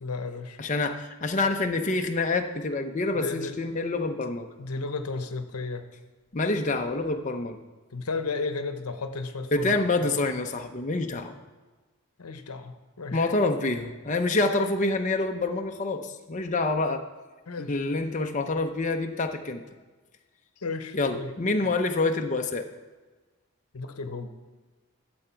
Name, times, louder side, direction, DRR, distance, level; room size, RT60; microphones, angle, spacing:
voice 1, 0.0-0.6 3.1-3.6 4.6-5.9 7.9-10.2 12.2-13.3 17.5-17.8 20.6-21.7 23.7-24.3, left 3 dB, 90° left, 8 dB, 0.9 m, -34 dB
voice 2, 0.6-4.5 6.3-7.6 9.5-11.3 13.1-17.0 17.6-19.6 20.9-22.7, left 2 dB, 35° left, 4 dB, 0.6 m, -27 dB
12.5 x 7.8 x 4.5 m, 1.3 s
head